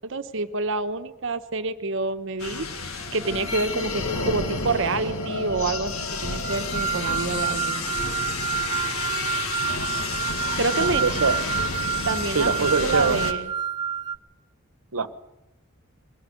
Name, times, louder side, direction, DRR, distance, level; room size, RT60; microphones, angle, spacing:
voice 1, 0.0-7.9 10.6-11.0 12.0-13.5, right 3 dB, 55° right, 9 dB, 1.2 m, -28 dB
sound 1, 2.4-13.3, left 3 dB, 75° left, 2.1 m, -30 dB
sound 2, 6.4-14.2, right 8 dB, 20° right, 0.8 m, -28 dB
voice 2, 10.7-11.4 12.3-13.2 14.9-15.1, right 4 dB, 80° right, 13 dB, 1.2 m, -24 dB
22.5 x 18.0 x 6.7 m, 0.95 s
head